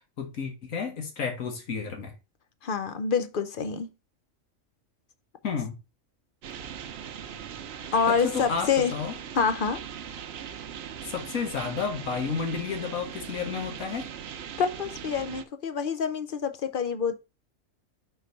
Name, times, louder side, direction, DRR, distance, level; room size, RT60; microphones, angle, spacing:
voice 1, 0.0-2.1 5.4-5.8 8.1-9.1 11.0-14.1, left 5 dB, 85° left, 1.9 m, -31 dB
voice 2, 2.6-3.9 7.9-8.9 9.3-9.8 14.6-17.2, left 6 dB, 50° left, 0.8 m, -27 dB
sound 1, 6.4-15.4, right 8 dB, 60° right, 0.8 m, -40 dB
4.5 x 4.4 x 5.3 m
omnidirectional pair, 1.4 m